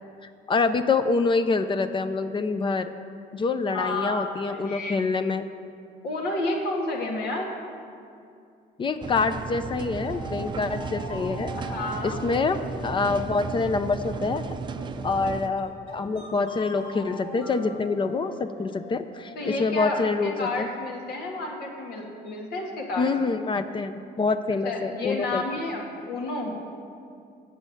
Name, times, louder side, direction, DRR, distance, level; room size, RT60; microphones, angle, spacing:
voice 1, 0.5-2.9 3.3-5.5 8.8-11.5 12.0-14.4 15.0-20.7 23.0-25.4, left 4 dB, 30° left, 10 dB, 0.4 m, -26 dB
voice 2, 3.7-5.0 6.0-7.5 11.6-12.2 19.3-23.1 24.6-26.5, left 2 dB, 70° left, 0 dB, 1.7 m, -31 dB
sound 1, 9.0-15.5, right 5 dB, 25° right, 0.5 m, -34 dB
sound 2, 10.0-19.4, left 2 dB, 90° left, 1.9 m, -43 dB
8.1 x 6.3 x 7.8 m, 2.4 s
cardioid pair, 110°, 17 cm